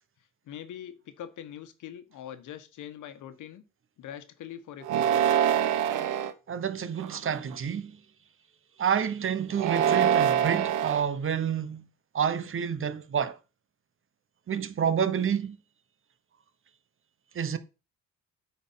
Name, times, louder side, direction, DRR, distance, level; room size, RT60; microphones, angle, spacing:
voice 1, 0.5-3.6 4.0-5.4, left 10 dB, 80° left, 1.2 m, -43 dB
sound 1, 4.8-6.3 7.0-7.5 9.5-11.0, right 9 dB, 85° right, 0.9 m, -25 dB
voice 2, 6.5-8.0 8.8-11.8 12.1-13.4 14.5-15.6 17.3-17.6, right 8 dB, 45° right, 1.0 m, -29 dB
8.5 x 4.4 x 5.6 m
cardioid pair, 90°, 30 cm